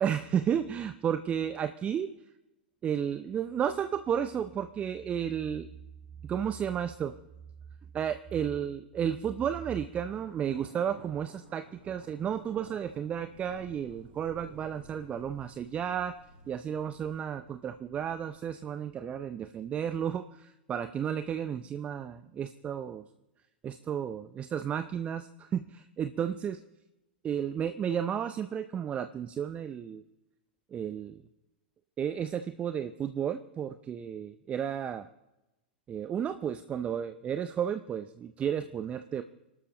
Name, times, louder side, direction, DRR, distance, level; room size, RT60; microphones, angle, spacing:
voice 1, 0.0-2.1 2.8-5.7 6.2-7.1 7.9-16.1 16.5-23.0 23.6-26.6 27.2-30.0 30.7-31.2 32.0-35.1 35.9-39.2, right 8 dB, 25° right, 10 dB, 0.6 m, -32 dB
Thunder, 9.4-19.2, right 3 dB, 45° right, 5.0 m, -55 dB
27.0 x 12.0 x 3.0 m, 0.97 s
figure-of-eight pair, 95°, 5 cm